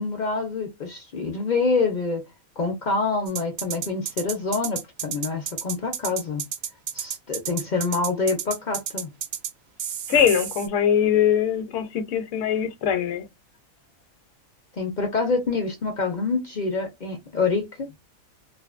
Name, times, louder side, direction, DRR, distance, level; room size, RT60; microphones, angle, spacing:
voice 1, 0.0-2.2 2.6-6.4 6.9-9.1 14.7-17.9, left 4 dB, 55° left, 0.5 m, -26 dB
sound 1, 3.3-9.5 9.8-10.7, right 9 dB, 65° right, 0.8 m, -31 dB
voice 2, 10.1-13.2, left 8 dB, 70° left, 0.9 m, -22 dB
2.5 x 2.5 x 2.4 m
omnidirectional pair, 1.4 m